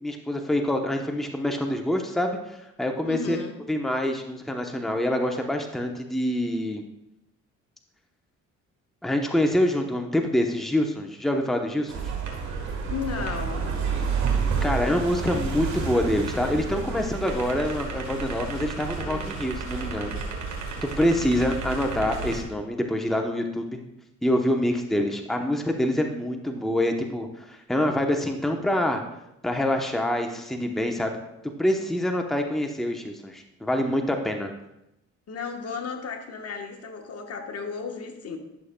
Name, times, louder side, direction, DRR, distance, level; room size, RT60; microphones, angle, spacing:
voice 1, 0.0-3.4 3.7-6.8 9.0-12.0 14.6-20.2 20.8-23.8 24.2-29.0 29.4-31.2 31.6-34.5, left 1 dB, ahead, 3 dB, 0.8 m, -26 dB
voice 2, 3.0-3.6 12.9-13.8 19.0-19.3 35.3-38.4, left 6 dB, 55° left, 3 dB, 1.2 m, -34 dB
sound 1, 11.9-22.4, right 5 dB, 65° right, 1.5 m, -30 dB
11.0 x 6.5 x 2.2 m, 0.86 s
cardioid pair, 90°, 30 cm